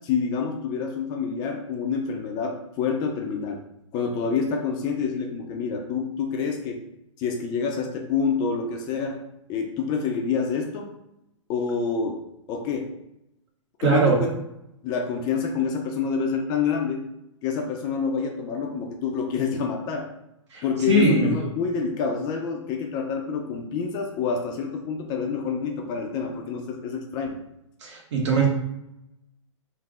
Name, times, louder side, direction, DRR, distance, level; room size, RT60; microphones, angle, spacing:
voice 1, 0.0-3.6 3.9-6.8 7.2-9.2 9.5-10.9 11.5-12.2 12.5-12.9 13.8-14.3 14.8-17.1 17.4-20.1 20.6-27.4, left 5 dB, 25° left, 2 dB, 0.4 m, -27 dB
voice 2, 13.8-14.2 20.5-21.4 27.8-28.5, right 3 dB, 60° right, -1 dB, 1.2 m, -21 dB
3.4 x 2.0 x 3.5 m, 0.85 s
hypercardioid pair, 130°, 16 cm